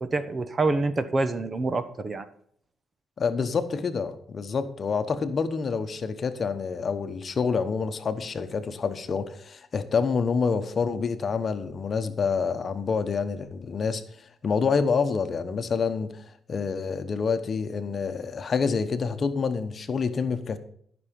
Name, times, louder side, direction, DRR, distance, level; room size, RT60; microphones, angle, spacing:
voice 1, 0.0-2.3, right 3 dB, 30° right, 11 dB, 1.0 m, -26 dB
voice 2, 3.2-14.0 14.4-16.2 16.5-20.6, left 5 dB, 45° left, 9 dB, 1.1 m, -27 dB
13.0 x 6.2 x 5.3 m, 0.63 s
cardioid pair, 90°, 0 cm